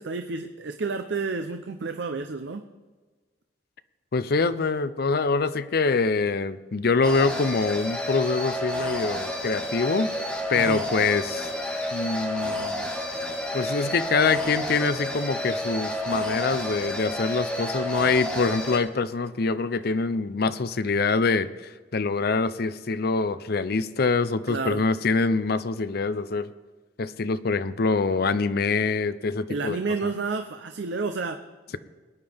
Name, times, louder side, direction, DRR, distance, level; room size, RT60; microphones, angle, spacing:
voice 1, 0.1-2.6 10.5-10.8 24.5-24.9 29.5-31.4, right 4 dB, 75° right, 7 dB, 0.7 m, -30 dB
voice 2, 4.1-10.1 10.5-11.5 11.9-12.9 13.5-26.5 27.0-29.8, left 4 dB, 60° left, 13 dB, 0.6 m, -25 dB
sound 1, 7.0-18.8, left 1 dB, 5° left, 1.6 m, -30 dB
21.5 x 9.6 x 3.5 m, 1.3 s
head